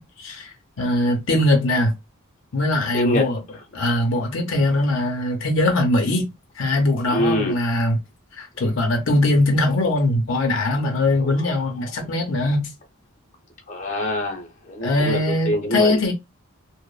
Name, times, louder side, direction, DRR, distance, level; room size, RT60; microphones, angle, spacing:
voice 1, 0.0-1.9 2.5-3.4 3.7-6.3 6.6-8.0 8.4-12.7 14.8-16.1, left 1 dB, 65° left, 0.6 m, -21 dB
voice 2, 7.1-7.6 11.2-11.4 13.7-16.0, equal, 35° left, 0.7 m, -24 dB
2.9 x 2.0 x 2.3 m
head